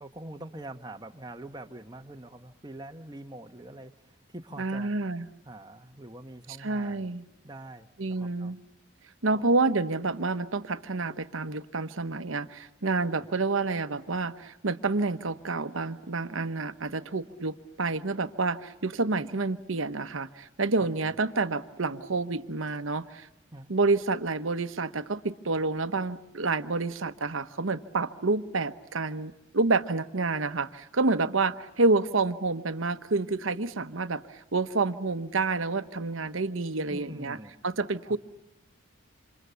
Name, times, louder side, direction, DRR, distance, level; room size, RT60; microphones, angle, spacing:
voice 1, 0.0-4.9 5.5-7.1 7.4-8.5 9.3-9.5 13.1-13.3 20.8-21.1 23.5-23.7 36.9-37.5 38.1-38.2, right 1 dB, 20° right, 6 dB, 1.1 m, -44 dB
voice 2, 4.6-5.3 6.6-7.2 8.0-8.6 9.2-23.3 23.7-37.4 37.6-38.2, right 3 dB, 75° right, 11 dB, 1.0 m, -28 dB
28.0 x 27.0 x 7.0 m, 0.96 s
head